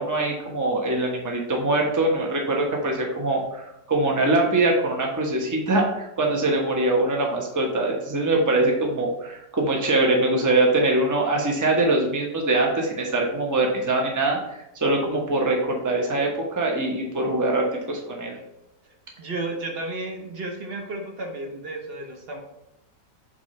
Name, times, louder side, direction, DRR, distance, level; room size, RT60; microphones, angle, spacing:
voice 1, 0.0-14.4 14.7-16.3 16.6-18.4, right 2 dB, 15° right, 0 dB, 0.8 m, -23 dB
voice 2, 19.2-22.4, right 2 dB, 40° right, 2 dB, 1.0 m, -32 dB
7.5 x 3.7 x 4.3 m, 0.87 s
omnidirectional pair, 1.9 m